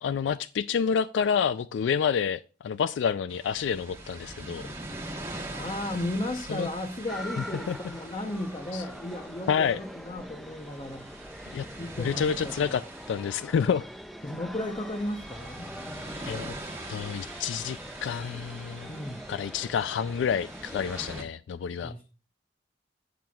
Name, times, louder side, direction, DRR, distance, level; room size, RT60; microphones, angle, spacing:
voice 1, 0.0-4.7 6.5-6.7 7.4-7.8 8.7-8.8 9.5-9.8 11.5-11.7 12.0-13.9 16.2-16.5 16.9-18.9 19.3-21.9, left 7 dB, 90° left, 0.3 m, -28 dB
sound 1, 3.3-21.2, right 1 dB, 15° right, 1.2 m, -43 dB
voice 2, 5.5-11.1 11.8-12.5 14.2-15.7 18.9-19.3 21.8-22.0, left 1 dB, 30° left, 0.7 m, -35 dB
sound 2, 7.1-21.2, equal, ahead, 0.3 m, -44 dB
17.5 x 6.0 x 2.3 m
head